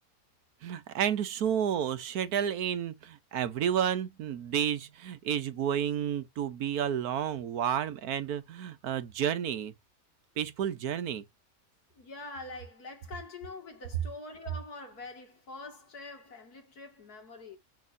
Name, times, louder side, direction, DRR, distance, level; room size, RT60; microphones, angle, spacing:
voice 1, 0.6-9.7 10.4-11.2, right 9 dB, 80° right, 1.4 m, -31 dB
voice 2, 11.9-17.6, left 3 dB, 90° left, 2.7 m, -45 dB
7.0 x 6.4 x 2.7 m
omnidirectional pair, 1.6 m